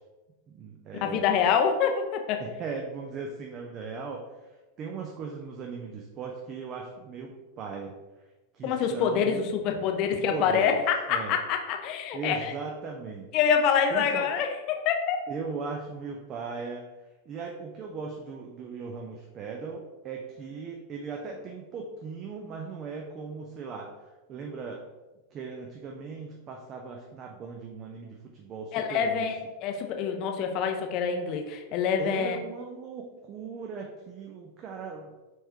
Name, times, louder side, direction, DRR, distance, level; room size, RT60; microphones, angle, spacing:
voice 1, 0.5-1.4 2.4-8.0 8.5-9.5 10.1-10.8 11.1-11.4 12.1-13.3 13.9-14.3 15.3-16.8 17.3-24.8 25.3-29.3 32.0-35.1, right 5 dB, 30° right, 1 dB, 0.4 m, -38 dB
voice 2, 1.0-2.4 8.6-12.5 13.3-15.2 28.7-32.4, left 7 dB, 40° left, 4 dB, 0.5 m, -26 dB
4.4 x 3.2 x 2.8 m, 1.1 s
figure-of-eight pair, 90°, 0 cm